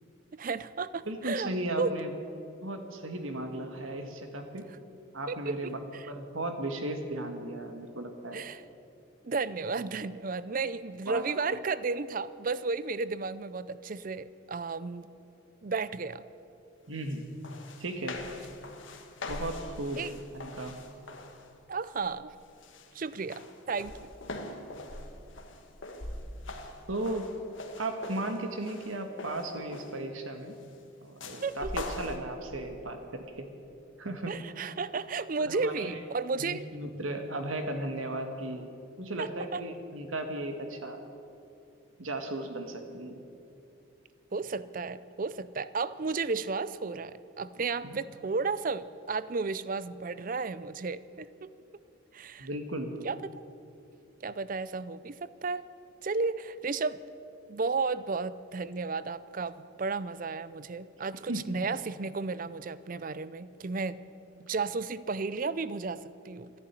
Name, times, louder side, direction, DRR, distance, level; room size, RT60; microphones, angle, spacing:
voice 1, 0.3-1.5 1.8-2.0 5.3-5.6 5.9-6.1 8.3-8.6 9.2-15.1 15.6-16.2 20.0-20.1 21.7-22.3 22.9-23.9 31.4-31.9 34.3-36.7 39.2-39.6 44.3-51.5 52.1-52.5 53.0-53.2 54.2-55.6 56.0-57.0 57.5-64.0 64.4-66.5, right 4 dB, 40° right, 16 dB, 0.5 m, -33 dB
voice 2, 1.1-2.1 2.6-4.6 5.1-5.8 6.1-8.5 11.1-11.2 11.5-11.6 16.9-17.3 17.8-18.2 19.3-20.1 20.3-20.7 26.9-27.2 27.8-30.6 31.0-33.5 34.0-34.3 35.4-36.0 36.4-38.7 39.0-41.0 42.0-43.2 47.8-48.0 52.4-52.9 61.3-61.6, right 1 dB, 80° right, 5 dB, 1.8 m, -36 dB
sound 1, 17.1-17.2 17.4-21.5 21.9-22.3 22.6-30.1 31.2-32.2, left 2 dB, 70° left, 1.6 m, -42 dB
14.0 x 11.0 x 9.7 m, 2.7 s
head